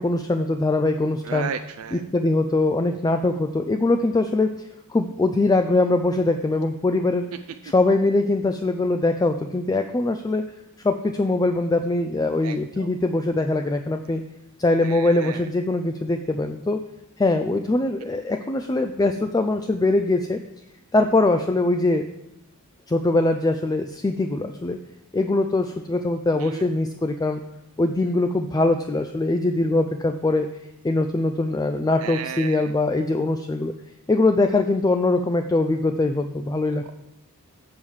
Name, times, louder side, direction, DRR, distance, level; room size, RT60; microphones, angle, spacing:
voice 1, 0.0-1.5 1.9-7.3 7.6-10.5 10.8-14.2 14.6-16.8 17.2-20.4 20.9-22.0 22.9-24.8 25.1-27.4 27.8-30.5 30.8-33.7 34.1-36.9, left 2 dB, 15° left, 6 dB, 0.3 m, -22 dB
voice 2, 1.2-2.0 12.4-12.9 14.8-15.4 26.4-26.6 32.0-32.7, right 7 dB, 75° right, 6 dB, 0.4 m, -34 dB
7.4 x 4.8 x 7.1 m, 0.87 s
head